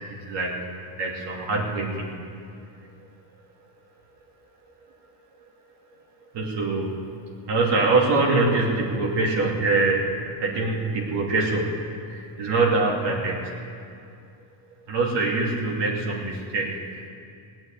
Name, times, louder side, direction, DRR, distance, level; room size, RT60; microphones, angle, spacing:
voice 1, 1.0-2.1 6.3-7.0 7.5-10.0 10.4-11.7 12.1-13.5 14.9-16.8, right 3 dB, 55° right, -2 dB, 2.9 m, -24 dB
18.0 x 8.9 x 9.2 m, 2.4 s
cardioid pair, 135°, 49 cm